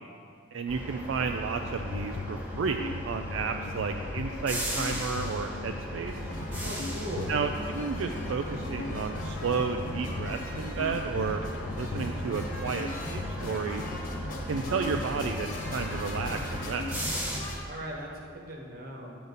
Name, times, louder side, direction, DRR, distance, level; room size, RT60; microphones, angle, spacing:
voice 1, 0.5-6.1 7.3-11.4 11.8-13.8 14.5-16.9, right 5 dB, 75° right, 5 dB, 0.4 m, -32 dB
sound 1, 0.7-17.4, equal, 10° right, 1.1 m, -38 dB
sound 2, 1.6-17.1, left 4 dB, 65° left, 0.3 m, -40 dB
sound 3, 6.0-17.6, equal, 45° left, 1.3 m, -40 dB
voice 2, 6.6-7.4 17.7-19.2, equal, 50° right, -1 dB, 1.2 m, -39 dB
9.2 x 6.6 x 4.0 m, 2.3 s
head